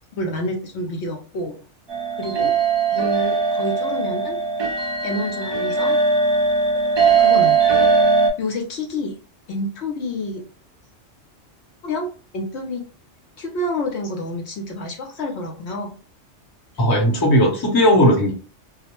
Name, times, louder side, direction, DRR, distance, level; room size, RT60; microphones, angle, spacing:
voice 1, 0.1-1.5 2.2-2.5 2.9-4.4 5.0-6.0 7.2-7.7 8.4-9.2 9.5-10.4 11.8-12.8 13.4-15.9, left 1 dB, 70° left, 1 dB, 0.9 m, -28 dB
sound 1, 1.9-8.3, right 4 dB, 40° right, 0.4 m, -19 dB
voice 2, 16.8-18.3, equal, 25° left, -1 dB, 0.7 m, -16 dB
2.4 x 2.1 x 2.9 m, 0.35 s
omnidirectional pair, 1.2 m